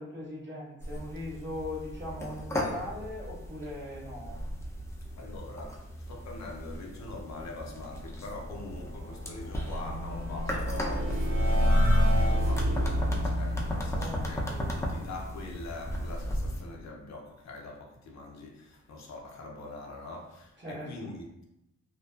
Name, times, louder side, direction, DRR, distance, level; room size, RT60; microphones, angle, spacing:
voice 1, 0.0-4.4 13.9-14.8 20.6-21.1, left 1 dB, 40° right, -6 dB, 1.0 m, -40 dB
sound 1, 0.8-16.6, equal, 10° left, 0.4 m, -35 dB
voice 2, 5.1-21.4, left 2 dB, 65° left, 0 dB, 0.5 m, -43 dB
sound 2, 8.3-15.5, left 1 dB, 80° right, 1.2 m, -29 dB
2.5 x 2.2 x 2.2 m, 0.84 s
cardioid pair, 75°, 29 cm